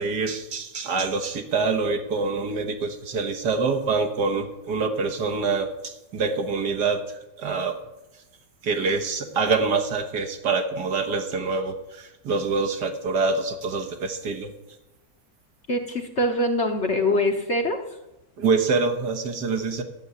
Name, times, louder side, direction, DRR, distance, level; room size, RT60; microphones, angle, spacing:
voice 1, 0.0-7.0 7.4-7.8 8.6-14.5 18.4-19.8, right 4 dB, 65° right, 4 dB, 1.9 m, -25 dB
voice 2, 15.7-17.8, left 1 dB, 40° left, 4 dB, 1.3 m, -23 dB
13.5 x 6.9 x 9.7 m, 0.96 s
omnidirectional pair, 2.0 m